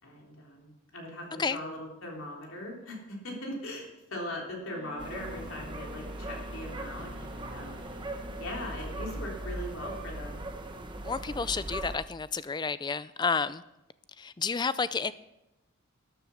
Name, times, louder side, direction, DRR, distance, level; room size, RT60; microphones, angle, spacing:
voice 1, 0.0-7.9 8.4-10.4, left 1 dB, 70° left, -1 dB, 3.6 m, -40 dB
Wind instrument woodwind instrument, 4.6-9.0, left 3 dB, 60° right, 2.7 m, -50 dB
sound 1, 5.0-12.0, right 1 dB, 20° right, 1.1 m, -39 dB
voice 2, 11.0-13.6 14.2-15.1, left 5 dB, 20° left, 16 dB, 0.4 m, -30 dB
13.0 x 10.0 x 6.4 m, 0.95 s
head